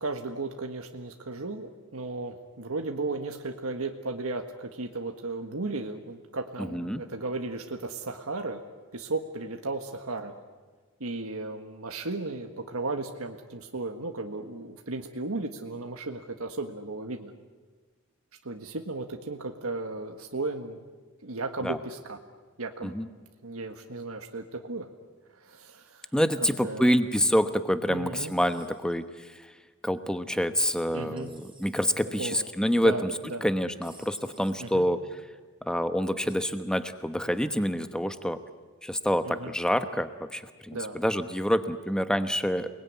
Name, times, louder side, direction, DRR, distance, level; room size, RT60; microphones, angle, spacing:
voice 1, 0.0-8.6 8.9-10.3 11.0-17.3 18.4-20.8 21.2-22.2 22.6-22.9 23.4-24.9 25.3-26.1 26.4-27.0 27.9-28.3 30.9-31.3 32.2-32.4 32.8-33.4 34.6-34.9 39.2-39.5 40.7-41.0, right 3 dB, 80° right, 4 dB, 1.6 m, -35 dB
voice 2, 6.6-7.0 21.6-21.8 22.8-23.1 26.1-29.5 29.8-33.1 33.4-35.0 35.7-38.4 38.8-42.7, equal, 5° left, 9 dB, 1.1 m, -27 dB
sound 1, 28.2-28.9 31.2-32.2 33.8-34.7 36.3-36.5, right 2 dB, 20° right, 5.5 m, -56 dB
29.0 x 21.0 x 9.5 m, 1.4 s
head